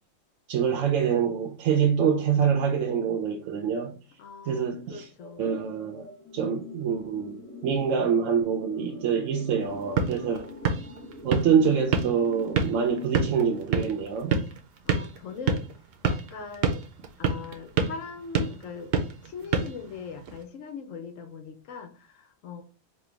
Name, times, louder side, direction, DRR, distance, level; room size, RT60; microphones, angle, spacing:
voice 1, 0.5-3.9 4.5-5.1 5.4-6.1 6.3-10.5 11.2-14.4, right 7 dB, 85° right, 1.0 m, -25 dB
voice 2, 4.2-5.6 14.8-15.6 16.0-16.8 17.2-18.9 19.2-22.6, left 5 dB, 85° left, 1.1 m, -40 dB
sound 1, 5.2-13.3, left 2 dB, 20° left, 0.4 m, -44 dB
sound 2, 9.6-20.4, right 5 dB, 60° right, 0.8 m, -30 dB
4.4 x 2.2 x 3.3 m
omnidirectional pair, 1.3 m